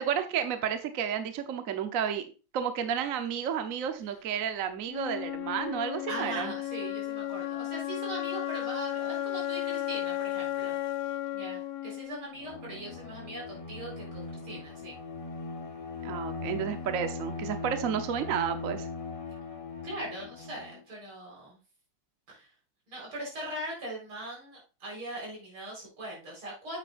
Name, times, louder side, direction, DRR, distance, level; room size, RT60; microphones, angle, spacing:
voice 1, 0.0-2.3 2.5-6.5 16.0-18.9, right 8 dB, 55° right, 8 dB, 1.0 m, -31 dB
Wind instrument woodwind instrument, 4.9-12.9, left 13 dB, 75° left, 1.0 m, -34 dB
voice 2, 6.1-10.8 11.3-15.0 19.8-21.6 22.3-22.5 22.9-26.8, right 1 dB, 80° right, -3 dB, 5.2 m, -40 dB
Bowed string instrument, 12.3-20.8, left 4 dB, 35° left, 0.5 m, -39 dB
8.9 x 8.0 x 2.5 m, 0.33 s
omnidirectional pair, 2.3 m